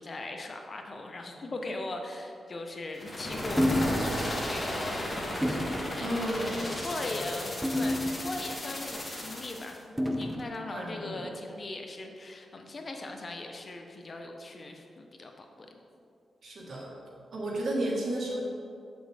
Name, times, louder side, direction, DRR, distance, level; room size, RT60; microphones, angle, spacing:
voice 1, 0.0-5.1 5.5-6.2 6.7-15.8, left 2 dB, 45° left, 3 dB, 0.8 m, -39 dB
sound 1, 2.9-9.8, left 1 dB, 25° left, 1.5 m, -35 dB
jug impacts, 3.6-4.0 4.5-4.6 5.4-5.8 6.6-6.9 7.6-8.5 10.0-10.5, left 1 dB, 5° right, 0.6 m, -29 dB
voice 2, 6.0-6.7 7.0-7.2 10.7-11.3 16.4-16.9 17.3-18.4, right 1 dB, 65° right, -3 dB, 1.5 m, -33 dB
7.6 x 6.1 x 3.5 m, 2.4 s
cardioid pair, 80°, 0 cm